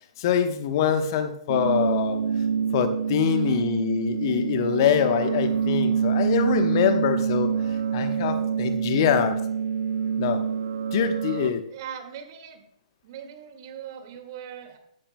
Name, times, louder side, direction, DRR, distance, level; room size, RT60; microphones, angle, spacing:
voice 1, 0.2-2.2 2.7-9.4 10.2-10.4 10.9-11.6, left 8 dB, 40° left, 9 dB, 1.0 m, -24 dB
sound 1, 1.5-11.5, right 7 dB, 55° right, 0.8 m, -26 dB
voice 2, 3.3-3.7 11.7-12.6 13.0-14.8, right 9 dB, 40° right, 6 dB, 1.9 m, -40 dB
14.5 x 11.5 x 2.2 m, 0.72 s
figure-of-eight pair, 120°, 3 cm